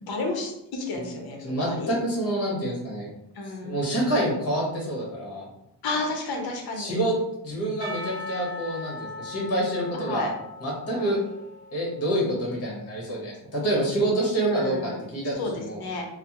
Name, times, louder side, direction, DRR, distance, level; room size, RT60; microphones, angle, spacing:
voice 1, 0.0-1.9 3.3-3.8 5.8-7.0 9.9-10.3 10.9-11.2 14.4-15.0 15.4-16.1, left 2 dB, 60° left, 1 dB, 0.7 m, -32 dB
voice 2, 1.4-3.1 3.6-5.4 6.8-7.2 7.4-10.3 10.6-11.2 11.7-15.8, right 1 dB, 35° left, -3 dB, 1.2 m, -27 dB
Percussion / Church bell, 7.8-12.6, left 2 dB, 65° right, 0.8 m, -40 dB
3.2 x 2.1 x 2.9 m, 0.83 s
cardioid pair, 95°, 43 cm